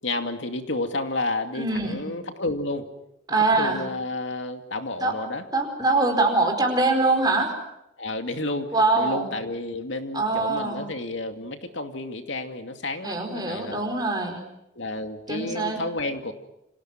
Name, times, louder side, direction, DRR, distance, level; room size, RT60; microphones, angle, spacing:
voice 1, 0.0-2.9 3.6-5.4 8.0-13.8 14.7-16.3, left 2 dB, 75° left, 6 dB, 2.5 m, -31 dB
voice 2, 1.6-2.0 3.3-3.8 5.0-5.1 5.5-7.5 8.7-9.3 10.1-10.8 13.0-14.4 15.3-15.8, right 3 dB, 20° right, 4 dB, 4.8 m, -23 dB
29.0 x 26.0 x 6.1 m, 0.86 s
head